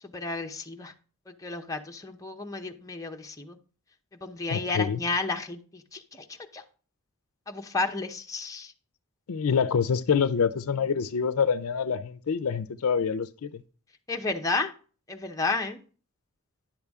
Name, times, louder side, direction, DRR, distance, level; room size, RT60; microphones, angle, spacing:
voice 1, 0.0-0.9 1.3-3.6 4.2-6.6 7.5-8.7 14.1-14.7 15.1-15.8, left 3 dB, 15° left, 0.7 m, -32 dB
voice 2, 4.5-5.0 9.3-13.6, left 6 dB, 75° left, 0.5 m, -26 dB
10.5 x 6.8 x 3.5 m
head